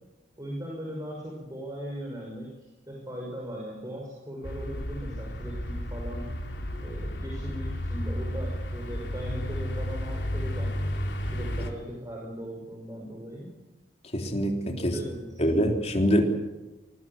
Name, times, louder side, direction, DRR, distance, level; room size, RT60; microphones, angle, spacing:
voice 1, 0.4-6.2 6.8-10.8 11.3-13.5 14.8-15.4, equal, 20° right, -2 dB, 6.0 m, -39 dB
sound 1, 4.4-11.7, equal, 75° left, 3.6 m, -32 dB
voice 2, 14.1-15.0 15.4-16.2, equal, 35° left, 2 dB, 3.5 m, -24 dB
25.0 x 21.0 x 7.3 m, 1.0 s
head